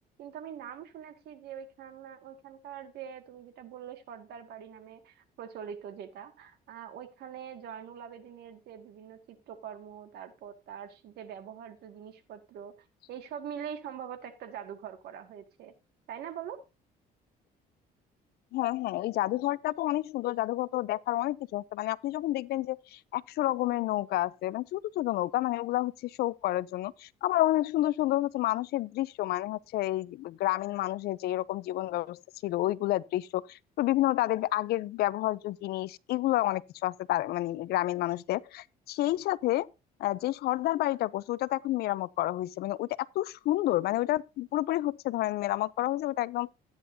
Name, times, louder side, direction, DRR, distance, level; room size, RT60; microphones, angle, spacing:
voice 1, 0.2-12.7 13.1-15.7 16.1-16.6, right 8 dB, 75° right, 2.0 m, -43 dB
voice 2, 18.5-39.7 40.0-46.5, left 15 dB, 70° left, 0.6 m, -29 dB
13.0 x 9.6 x 2.7 m
cardioid pair, 110°, 17 cm